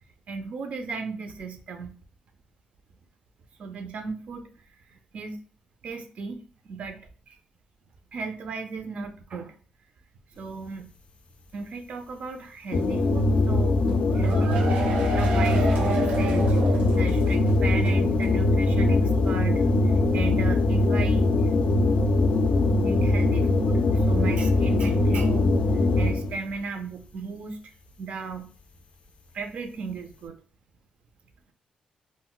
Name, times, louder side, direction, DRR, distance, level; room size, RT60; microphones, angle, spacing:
voice 1, 0.3-1.9 3.6-5.4 5.8-7.0 7.3-7.4 8.1-9.6 10.3-10.9 11.5-13.8 14.1-16.6 16.9-21.5 22.8-27.6 28.0-28.5 29.3-30.4, right 4 dB, 55° right, 6 dB, 0.4 m, -36 dB
sound 1, 12.7-26.4, left 2 dB, 45° left, 0.3 m, -22 dB
sound 2, 13.9-17.5 17.8-17.9 18.2-18.3, right 4 dB, 90° right, 0.6 m, -31 dB
2.4 x 2.0 x 3.7 m, 0.39 s
wide cardioid pair, 155°, 3 cm